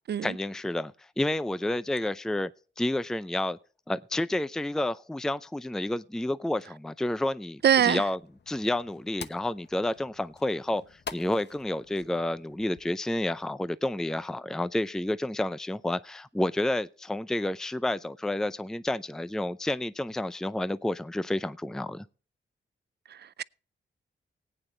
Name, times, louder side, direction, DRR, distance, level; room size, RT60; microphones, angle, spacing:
voice 1, 0.2-2.5 2.8-3.6 3.9-8.2 8.5-22.1, left 1 dB, 5° left, 0.5 m, -30 dB
sound 1, 7.6-13.0, left 6 dB, 55° left, 1.0 m, -47 dB
voice 2, 7.6-8.0 23.1-23.4, right 9 dB, 55° right, 0.4 m, -23 dB
19.0 x 9.1 x 3.2 m
cardioid pair, 65°, 20 cm